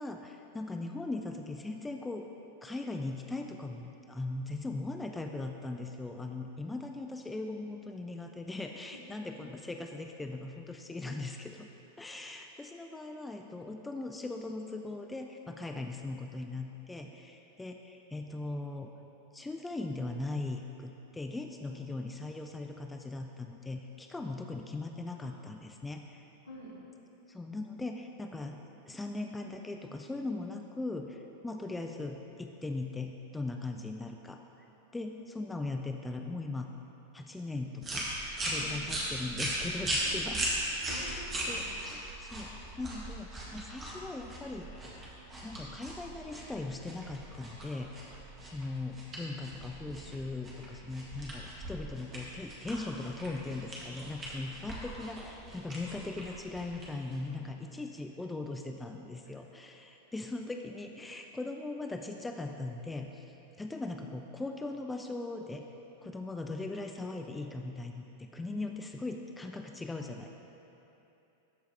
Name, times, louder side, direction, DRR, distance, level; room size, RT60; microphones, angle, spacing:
voice 1, 0.0-2.3 2.6-11.7 12.0-18.9 19.3-26.3 27.3-34.4 34.9-36.7 37.1-38.1 38.4-40.4 40.9-44.8 45.4-48.1 48.4-65.6 66.0-70.3, left 2 dB, 10° left, 4 dB, 0.3 m, -39 dB
sound 1, 37.8-57.4, right 1 dB, 25° right, 1.6 m, -39 dB
voice 2, 38.6-38.9 40.0-41.7 57.3-57.5 59.2-59.3 66.0-66.1 68.4-68.7, equal, 75° left, -5 dB, 1.7 m, -50 dB
13.5 x 4.6 x 3.3 m, 3.0 s
figure-of-eight pair, 90°, 0 cm